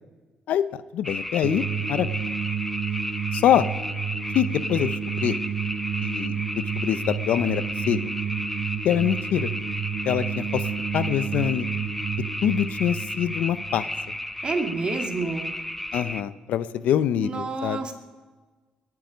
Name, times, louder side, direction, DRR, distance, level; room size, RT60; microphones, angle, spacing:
voice 1, 0.5-1.6 1.9-2.1 3.3-3.7 4.3-5.4 6.0-8.0 8.8-9.5 10.0-10.7 10.9-11.7 12.4-13.9 15.9-17.8, left 10 dB, 80° left, 14 dB, 0.7 m, -24 dB
sound 1, 1.0-16.2, left 1 dB, 10° left, 0.7 m, -33 dB
sound 2, 1.4-14.5, right 7 dB, 75° right, 1.0 m, -31 dB
voice 2, 14.4-15.5 17.2-17.9, right 3 dB, 40° right, 3 dB, 2.5 m, -29 dB
21.5 x 9.6 x 5.1 m, 1.3 s
cardioid pair, 95°, 2 cm